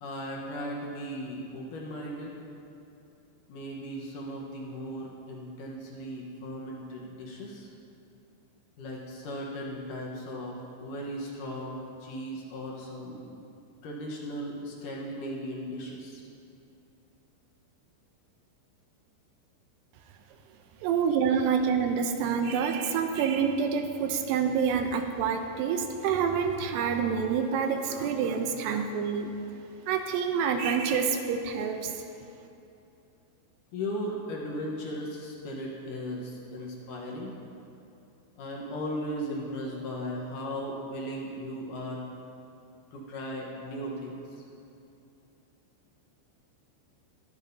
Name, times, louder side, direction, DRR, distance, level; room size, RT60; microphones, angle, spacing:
voice 1, 0.0-2.3 3.5-7.7 8.8-13.4 13.8-16.2 33.7-37.4 38.4-42.1 42.9-44.2, equal, 70° left, -3 dB, 2.0 m, -37 dB
voice 2, 20.8-29.3 29.9-32.0, right 6 dB, 80° right, 6 dB, 2.5 m, -27 dB
21.0 x 10.5 x 2.7 m, 2.8 s
omnidirectional pair, 5.2 m